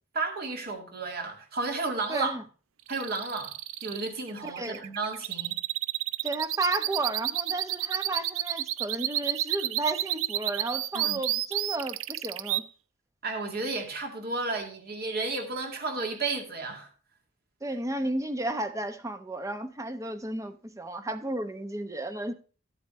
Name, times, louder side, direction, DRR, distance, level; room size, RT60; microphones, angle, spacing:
voice 1, 0.1-2.3 2.9-3.5 3.8-5.6 10.9-11.2 13.2-16.9, right 3 dB, 50° right, 2.1 m, -32 dB
voice 2, 2.1-2.4 4.4-4.8 6.2-12.6 17.6-22.3, right 2 dB, 15° right, 0.8 m, -33 dB
sound 1, 2.9-12.6, right 15 dB, 90° right, 0.4 m, -30 dB
13.5 x 7.9 x 3.1 m
head